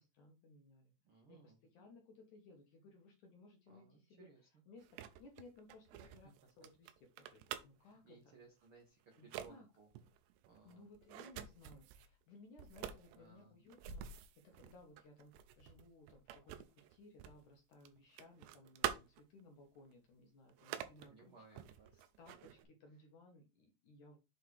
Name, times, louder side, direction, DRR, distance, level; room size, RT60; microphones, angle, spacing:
voice 1, 0.0-0.9 1.3-6.3 6.6-8.2 9.2-9.7 10.6-21.6 22.2-24.2, left 2 dB, 65° left, 2 dB, 2.1 m, -61 dB
voice 2, 1.0-1.6 3.7-4.4 6.0-6.1 7.8-9.9 10.4-10.9 13.1-13.6 21.0-22.0, right 4 dB, 65° right, 1 dB, 1.3 m, -62 dB
sound 1, 4.8-7.9 8.6-8.8 9.1-9.5 9.9-12.1 12.6-17.5 17.7-19.4 19.9-20.0 20.5-21.1 21.6-22.6, right 11 dB, 90° right, 2.9 m, -47 dB
7.8 x 4.0 x 4.7 m, 0.27 s
omnidirectional pair, 4.9 m